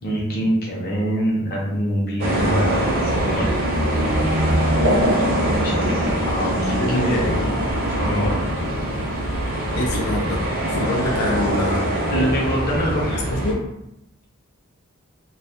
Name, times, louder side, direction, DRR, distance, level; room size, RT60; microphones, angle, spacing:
voice 1, 0.0-3.5 5.6-7.2 8.0-8.5 12.1-13.2, equal, 45° left, -4 dB, 0.6 m, -25 dB
sound 1, 2.2-13.5, right 1 dB, 45° right, 0.6 m, -22 dB
voice 2, 6.8-7.4 9.7-10.2 10.7-11.9 13.3-13.6, left 1 dB, 90° left, -2 dB, 0.5 m, -24 dB
2.3 x 2.0 x 2.8 m, 0.84 s
head